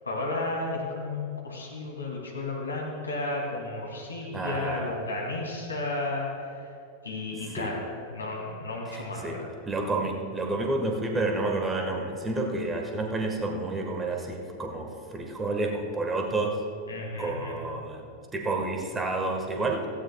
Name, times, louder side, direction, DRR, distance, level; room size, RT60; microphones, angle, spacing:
voice 1, 0.0-6.5 7.0-7.8 8.1-9.5 16.9-17.7, left 2 dB, 75° left, -2 dB, 2.6 m, -33 dB
voice 2, 4.3-4.9 7.6-7.8 8.9-16.6 17.2-18.0 18.3-19.9, right 2 dB, 15° right, 2 dB, 1.4 m, -30 dB
16.5 x 15.5 x 2.3 m, 2.4 s
figure-of-eight pair, 90°, 0 cm